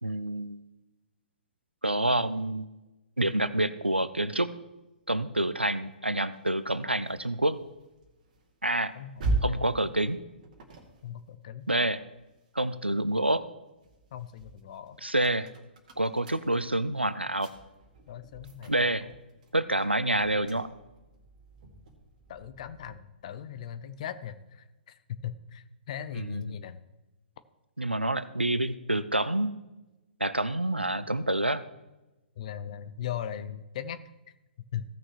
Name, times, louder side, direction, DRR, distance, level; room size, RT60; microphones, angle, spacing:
voice 1, 0.0-0.6 1.8-2.7 3.2-4.5 5.1-7.6 8.6-8.9 9.4-10.2 11.7-12.0 12.5-13.5 15.0-15.5 16.0-17.5 18.7-19.1 19.5-20.7 26.2-26.5 27.8-29.5 30.2-31.6, right 1 dB, 90° right, 15 dB, 0.6 m, -27 dB
sound 1, 6.3-12.9 13.3-23.1, right 2 dB, 45° right, 1.9 m, -40 dB
voice 2, 11.0-11.7 14.1-15.0 18.1-18.7 19.0-19.2 22.3-26.8 32.4-34.0 34.7-34.8, left 9 dB, 40° left, 12 dB, 0.7 m, -39 dB
16.5 x 6.3 x 3.0 m, 1.0 s
figure-of-eight pair, 120°, 6 cm